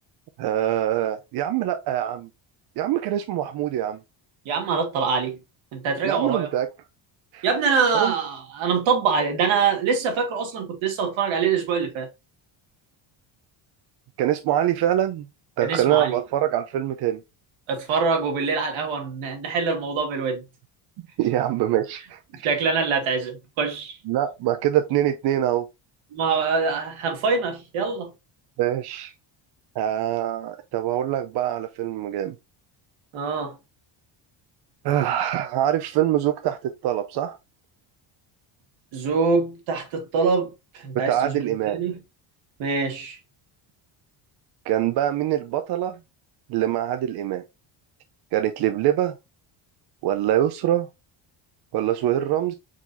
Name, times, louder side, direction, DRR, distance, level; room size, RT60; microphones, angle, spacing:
voice 1, 0.4-2.3 2.8-4.0 6.0-6.7 7.3-7.4 7.9-8.1 14.2-15.3 15.6-17.2 21.2-22.5 24.1-25.7 28.6-29.1 29.8-32.4 34.8-37.4 41.1-41.8 44.7-46.0 46.5-47.4 48.3-49.1 50.0-50.9 51.7-52.5, right 12 dB, 55° right, 0.5 m, -24 dB
voice 2, 4.5-5.4 5.7-6.5 7.4-12.1 15.6-16.2 17.7-20.4 22.4-24.0 26.1-28.1 33.1-33.6 38.9-42.0 42.6-43.2, right 5 dB, 70° right, 1.9 m, -24 dB
4.9 x 4.0 x 2.5 m
cardioid pair, 170°, 49 cm